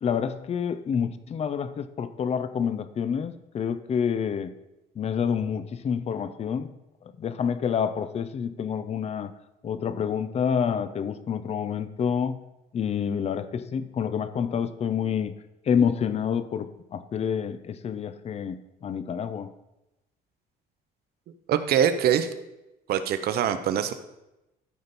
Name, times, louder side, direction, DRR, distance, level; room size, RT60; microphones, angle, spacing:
voice 1, 0.0-4.5 5.0-6.7 7.0-9.3 9.6-12.4 12.7-15.3 15.7-19.5, left 7 dB, 40° left, 13 dB, 0.6 m, -28 dB
voice 2, 21.5-22.3 22.9-23.9, right 9 dB, 65° right, 10 dB, 0.9 m, -23 dB
13.5 x 5.2 x 4.1 m, 0.94 s
cardioid pair, 110°, 17 cm